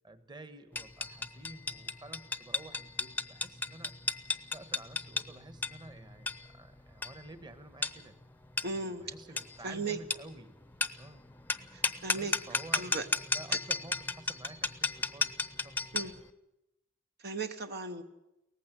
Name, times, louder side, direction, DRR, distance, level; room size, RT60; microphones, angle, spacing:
voice 1, 0.0-3.9 4.5-8.2 8.7-10.5 11.0-11.3 12.1-12.9 13.3-16.1, right 2 dB, 25° right, 11 dB, 1.3 m, -51 dB
sound 1, 0.8-16.2, left 3 dB, 10° left, 0.7 m, -35 dB
voice 2, 8.6-9.0 9.6-10.0 11.7-12.3 12.7-13.1 15.9-16.1 17.2-18.0, right 3 dB, 55° right, 7 dB, 1.0 m, -36 dB
18.5 x 15.0 x 9.6 m, 0.90 s
head